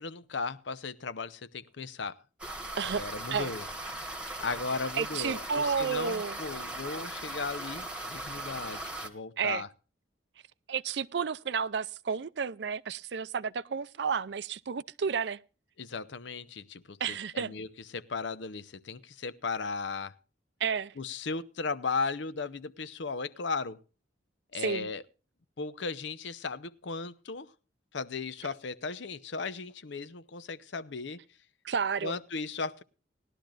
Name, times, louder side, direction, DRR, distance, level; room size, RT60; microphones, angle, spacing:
voice 1, 0.0-2.2 2.8-3.7 4.4-9.7 15.8-20.2 21.0-23.8 24.5-25.0 25.6-27.5 27.9-31.2 32.0-32.8, left 4 dB, 75° left, 0.7 m, -36 dB
sound 1, 2.4-9.1, right 1 dB, 5° right, 1.3 m, -39 dB
voice 2, 2.8-3.5 5.0-6.4 9.4-9.6 10.7-15.4 17.0-17.5 20.6-20.9 24.6-24.9 31.6-32.2, right 6 dB, 65° right, 0.5 m, -31 dB
19.5 x 12.0 x 2.5 m
head